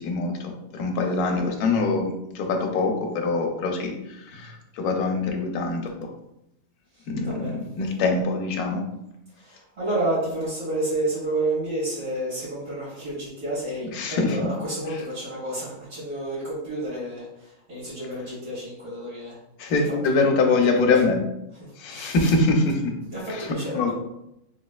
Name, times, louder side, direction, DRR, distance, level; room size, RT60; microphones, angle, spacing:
voice 1, 0.0-5.9 7.1-7.5 7.8-8.8 13.9-14.4 19.6-21.2 21.8-22.9 23.7-23.9, left 3 dB, 80° left, 2 dB, 1.1 m, -24 dB
voice 2, 6.9-7.6 9.3-19.4 19.7-20.9 21.6-22.3 23.1-23.9, right 1 dB, 55° right, -11 dB, 2.0 m, -30 dB
3.2 x 3.0 x 2.3 m, 0.84 s
omnidirectional pair, 1.6 m